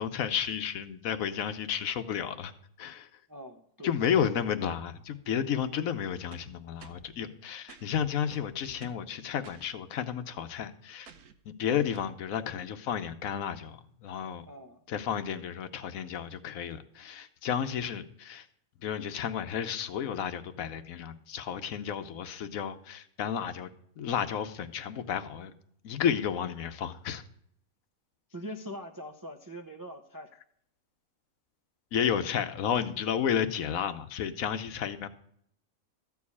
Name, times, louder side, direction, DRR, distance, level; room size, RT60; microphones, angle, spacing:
voice 1, 0.0-2.5 2.8-3.1 3.8-11.1 11.5-14.4 14.9-18.5 18.8-23.7 24.0-25.5 25.8-27.2 31.9-35.1, left 8 dB, 70° left, 10 dB, 1.2 m, -32 dB
voice 2, 3.3-4.0 14.5-14.8 28.3-30.3, equal, 25° right, 4 dB, 0.4 m, -42 dB
sound 1, 6.3-7.1 7.7-7.9 8.3-9.1 9.4-9.7 11.1-11.4 11.9-12.2, right 7 dB, 80° right, 1.4 m, -51 dB
13.5 x 4.8 x 8.4 m, 0.68 s
omnidirectional pair, 1.5 m